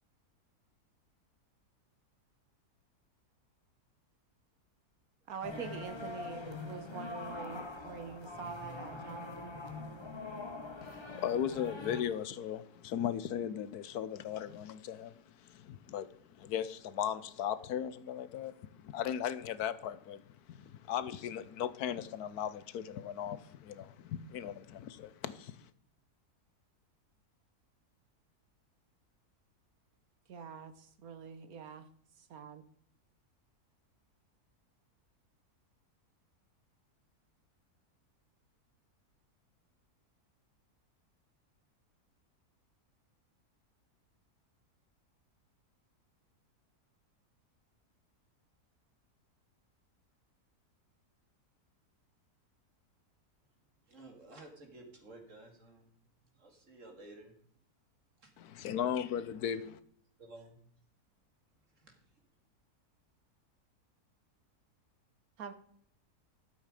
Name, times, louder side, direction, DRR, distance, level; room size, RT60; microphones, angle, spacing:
voice 1, 5.3-9.6 30.3-31.9 32.3-32.6 65.4-65.5, right 5 dB, 70° right, 1.3 m, -45 dB
sound 1, 5.4-12.0, left 2 dB, 20° left, 1.0 m, -43 dB
voice 2, 10.8-20.2 20.5-25.7 58.4-59.8, left 9 dB, 75° left, 1.2 m, -37 dB
voice 3, 53.8-55.9 56.2-57.3 58.2-58.7 59.5-59.6 60.2-60.5 61.7-62.2, right 2 dB, 50° right, 2.7 m, -54 dB
12.5 x 7.5 x 5.0 m
omnidirectional pair, 1.7 m